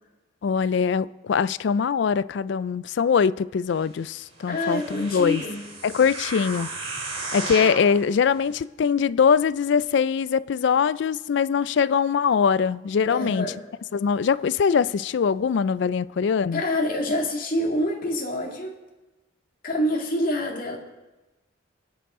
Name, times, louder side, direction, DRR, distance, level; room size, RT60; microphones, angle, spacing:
voice 1, 0.4-5.4 5.8-6.7 7.3-13.5 13.9-16.6, left 6 dB, 65° left, 0.3 m, -22 dB
sound 1, 4.4-7.9 8.5-8.6, right 3 dB, 85° right, 3.8 m, -34 dB
voice 2, 4.5-5.6 13.1-13.6 16.5-18.7 19.6-20.8, left 1 dB, 45° left, 2.1 m, -26 dB
24.5 x 9.3 x 3.7 m
head